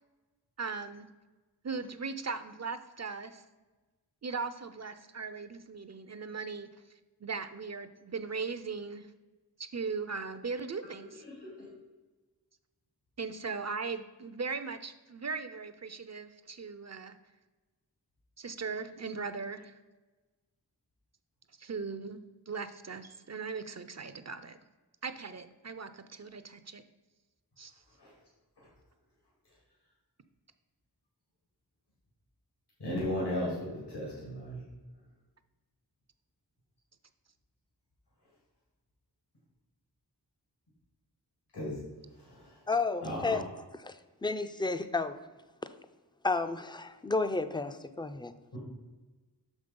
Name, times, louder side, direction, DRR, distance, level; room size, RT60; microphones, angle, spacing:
voice 1, 0.6-1.1 1.6-3.4 4.2-6.7 7.2-9.1 9.6-11.2 13.2-17.2 18.4-19.8 21.6-22.2 22.5-24.6 25.0-26.8 27.6-27.7, right 4 dB, 40° right, 11 dB, 0.5 m, -38 dB
voice 2, 32.8-34.6 41.5-41.7 43.0-43.4 48.5-48.6, left 1 dB, 75° left, -4 dB, 2.2 m, -35 dB
voice 3, 42.7-43.5 43.8-44.0 44.2-45.2 46.2-48.3, left 3 dB, 10° left, 10 dB, 0.4 m, -31 dB
6.3 x 5.3 x 5.3 m, 1.2 s
wide cardioid pair, 55°, 40 cm